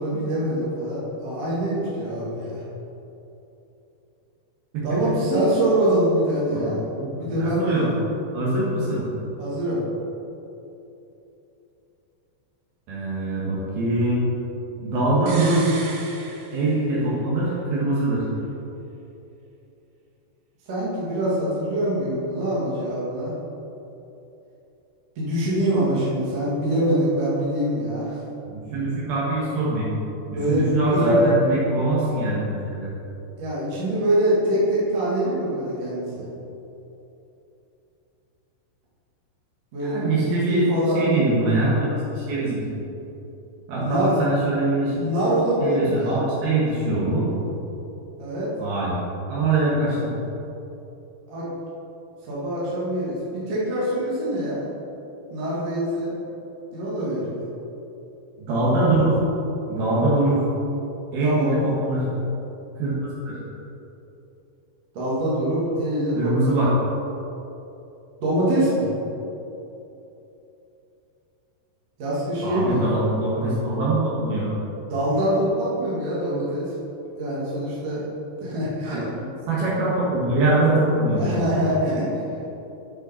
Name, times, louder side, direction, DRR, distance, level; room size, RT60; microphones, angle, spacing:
voice 1, 0.0-2.5 4.8-6.8 7.1-7.9 9.4-9.8 20.7-23.3 25.2-28.2 30.3-30.7 30.9-31.2 33.4-36.3 39.7-41.0 43.7-44.1 45.0-46.2 48.2-48.5 51.3-51.5 52.2-54.6 55.3-56.2 56.7-57.3 61.2-61.5 64.9-66.7 68.2-68.9 72.0-72.8 74.9-76.7 77.2-78.0 78.4-79.1 81.1-82.1, right 1 dB, 45° right, -8 dB, 2.5 m, -24 dB
voice 2, 4.7-5.1 6.5-7.9 8.3-9.0 12.9-14.2 14.8-15.7 16.5-18.3 28.5-29.9 30.3-32.9 39.8-40.6 40.9-41.9 42.1-42.8 43.7-45.0 45.6-47.3 48.6-48.9 49.3-50.1 58.4-59.2 59.7-60.4 61.1-62.0 62.8-62.9 63.2-63.4 66.1-66.7 72.4-74.5 78.8-81.3, right 2 dB, 65° right, -7 dB, 3.2 m, -23 dB
sound 1, 15.3-17.2 17.5-17.6, right 3 dB, 90° right, 1.8 m, -36 dB
9.6 x 5.6 x 4.4 m, 3.0 s
omnidirectional pair, 5.0 m